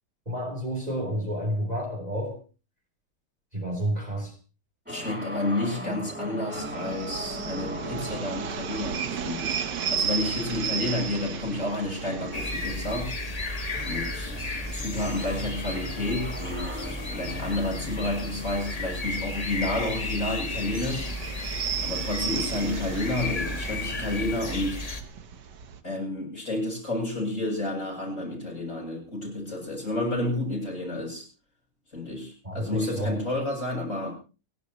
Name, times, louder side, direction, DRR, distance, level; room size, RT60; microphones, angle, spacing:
voice 1, 0.3-2.4 3.5-4.3 32.4-33.2, equal, 20° right, 1 dB, 3.6 m, -30 dB
sound 1, 4.8-20.6, equal, 5° right, 4.7 m, -40 dB
voice 2, 4.9-9.6 9.9-13.1 13.8-14.3 14.7-21.1 21.8-24.8 25.8-31.2 31.9-34.1, left 1 dB, 45° left, -2 dB, 8.4 m, -30 dB
sound 2, 6.5-25.8, right 7 dB, 80° right, 1.8 m, -36 dB
sound 3, 12.3-25.0, left 2 dB, 25° left, 1.5 m, -33 dB
29.5 x 11.5 x 3.1 m, 0.33 s
omnidirectional pair, 1.8 m